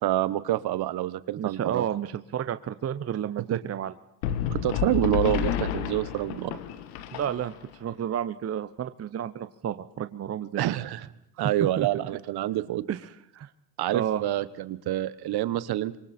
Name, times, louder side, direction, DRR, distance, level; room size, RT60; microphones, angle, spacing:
voice 1, 0.0-1.8 3.5-3.6 4.5-6.6 10.6-11.1 11.4-12.8 13.8-16.0, right 14 dB, 55° right, 16 dB, 1.3 m, -27 dB
voice 2, 1.4-3.9 7.1-10.6 11.8-11.9 12.9-13.5 13.9-14.2, right 9 dB, 35° right, 12 dB, 0.9 m, -31 dB
sound 1, 4.2-7.7, left 10 dB, 85° left, 1.7 m, -30 dB
27.5 x 24.0 x 4.4 m, 0.83 s
supercardioid pair, 95°, 45 cm